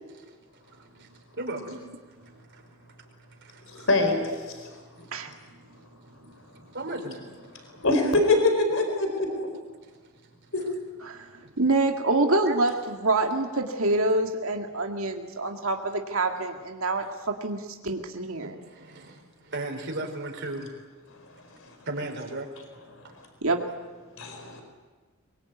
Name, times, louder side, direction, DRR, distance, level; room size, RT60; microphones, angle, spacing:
voice 1, 1.4-1.8 3.4-3.6 4.3-4.4 6.7-7.2 9.3-9.4 12.5-12.6 18.4-20.7 21.9-22.5, right 2 dB, 55° right, 2 dB, 4.9 m, -35 dB
voice 2, 3.9-4.2 7.8-9.5 10.5-10.6 24.2-24.6, left 2 dB, 65° left, 6 dB, 4.5 m, -23 dB
voice 3, 11.6-17.1 17.4-18.5 23.4-23.6, right 2 dB, 75° right, 3 dB, 2.2 m, -26 dB
24.0 x 23.5 x 9.4 m, 1.4 s
head